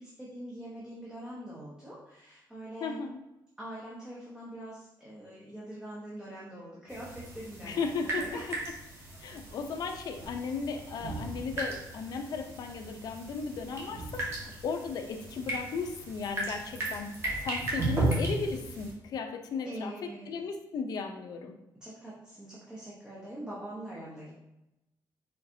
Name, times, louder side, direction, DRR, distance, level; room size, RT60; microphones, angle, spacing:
voice 1, 0.0-3.1 3.6-8.4 19.6-20.4 21.8-24.3, right 1 dB, 10° right, -7 dB, 0.9 m, -43 dB
voice 2, 2.8-3.2 7.6-8.3 9.2-14.3 14.6-17.1 17.4-19.9 20.3-21.5, left 5 dB, 60° left, 5 dB, 0.5 m, -35 dB
sound 1, 6.9-18.9, right 2 dB, 35° right, 1.2 m, -36 dB
4.3 x 4.0 x 2.6 m, 0.91 s
cardioid pair, 145°, 8 cm